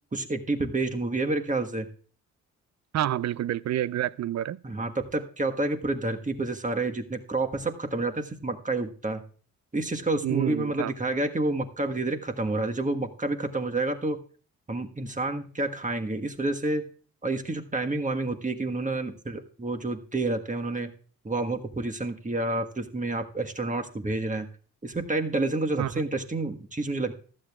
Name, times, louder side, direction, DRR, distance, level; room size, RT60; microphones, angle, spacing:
voice 1, 0.1-1.9 4.6-9.2 9.7-14.2 14.7-16.8 17.2-20.9 21.2-24.5 24.8-27.1, right 2 dB, 20° right, 1.5 m, -29 dB
voice 2, 2.9-4.6 10.2-10.9 25.8-25.9, right 12 dB, 50° right, 0.4 m, -28 dB
15.0 x 12.0 x 2.4 m
hypercardioid pair, 45°, 37 cm